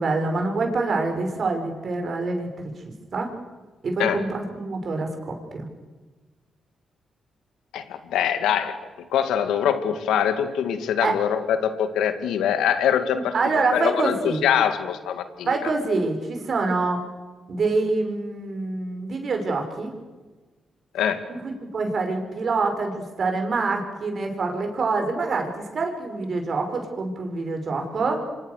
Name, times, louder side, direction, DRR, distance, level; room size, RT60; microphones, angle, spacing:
voice 1, 0.0-2.7 3.1-3.3 3.8-5.7 11.0-11.1 13.1-14.4 15.5-17.0 17.5-19.9 21.3-28.2, right 3 dB, 55° right, 4 dB, 6.0 m, -26 dB
voice 2, 7.7-8.7 9.1-13.3 13.7-14.2 14.4-15.7 20.9-21.2, left 9 dB, 85° left, 9 dB, 2.3 m, -23 dB
28.0 x 25.0 x 6.8 m, 1.3 s
supercardioid pair, 60°, 0 cm